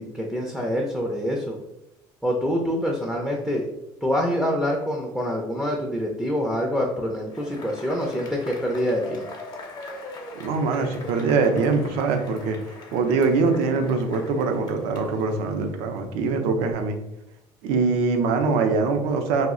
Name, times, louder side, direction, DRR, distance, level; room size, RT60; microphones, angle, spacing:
voice 1, 0.0-1.6 2.2-3.6 4.0-9.3, equal, ahead, 0 dB, 0.4 m, -26 dB
Cheering / Applause / Crowd, 7.3-16.0, left 2 dB, 40° left, 0.7 m, -41 dB
voice 2, 10.3-17.0 17.6-19.5, right 4 dB, 80° right, 6 dB, 0.4 m, -23 dB
2.3 x 2.0 x 3.6 m, 0.87 s
supercardioid pair, 110°, 10 cm